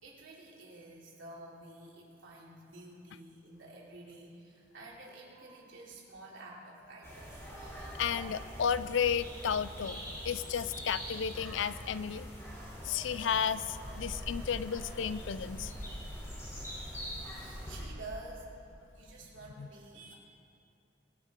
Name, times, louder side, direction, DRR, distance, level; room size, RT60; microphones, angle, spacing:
voice 1, 0.0-7.4 17.2-18.5 18.9-20.2, right 2 dB, 90° right, -4 dB, 3.1 m, -50 dB
sound 1, 7.0-17.8, equal, 15° left, 3.2 m, -43 dB
voice 2, 8.0-12.3 12.8-15.7 19.6-19.7, left 7 dB, 85° left, 15 dB, 0.4 m, -33 dB
23.5 x 9.7 x 3.7 m, 2.6 s
head